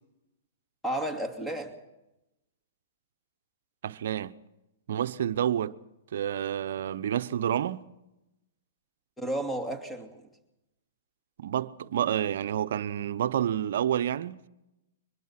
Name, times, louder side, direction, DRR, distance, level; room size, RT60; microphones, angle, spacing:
voice 1, 0.8-1.8 9.2-10.3, right 1 dB, 5° left, 2.7 m, -32 dB
voice 2, 3.8-4.3 4.9-5.8 6.1-7.9 11.4-14.5, right 10 dB, 65° right, 0.9 m, -29 dB
23.5 x 21.5 x 6.0 m
hypercardioid pair, 125°, 0 cm